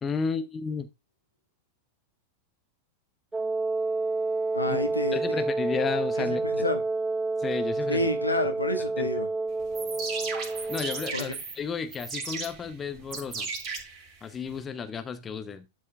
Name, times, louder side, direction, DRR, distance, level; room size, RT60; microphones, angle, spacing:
voice 1, 0.0-0.9 4.7-4.8 5.1-6.6 7.4-8.1 9.0-9.1 10.7-13.5 14.2-15.7, left 6 dB, 20° left, 1.0 m, -33 dB
Wind instrument woodwind instrument, 3.3-11.2, right 3 dB, 10° right, 0.4 m, -29 dB
voice 2, 4.5-5.4 6.2-6.8 7.9-9.3 11.1-11.4, left 1 dB, 85° left, 1.5 m, -29 dB
sound 1, 9.6-14.6, right 4 dB, 30° right, 3.5 m, -36 dB
12.0 x 4.9 x 3.4 m
figure-of-eight pair, 90°, 0 cm